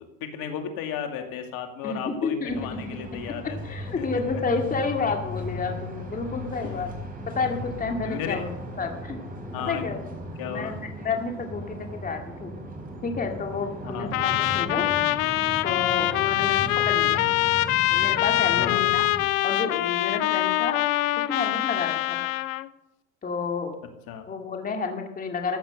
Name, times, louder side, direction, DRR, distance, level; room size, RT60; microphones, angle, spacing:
voice 1, 0.2-4.1 8.0-8.4 9.5-9.8 10.4-10.7 13.8-14.1 16.6-16.8 18.5-19.0 24.1-24.2, left 8 dB, 55° left, 5 dB, 2.4 m, -34 dB
voice 2, 1.8-2.8 3.1-3.2 3.6-6.9 7.3-9.2 9.7-10.0 10.5-12.5 13.0-14.9 15.6-17.2 17.9-19.1 19.4-20.8 21.3-22.3 23.2-23.8 24.3-25.6, left 4 dB, 20° left, 3 dB, 2.1 m, -30 dB
sound 1, 2.5-19.3, equal, 20° right, 4.9 m, -37 dB
Trumpet, 14.1-22.7, left 17 dB, 75° left, 0.8 m, -24 dB
15.0 x 9.1 x 6.6 m, 0.89 s
supercardioid pair, 105°, 41 cm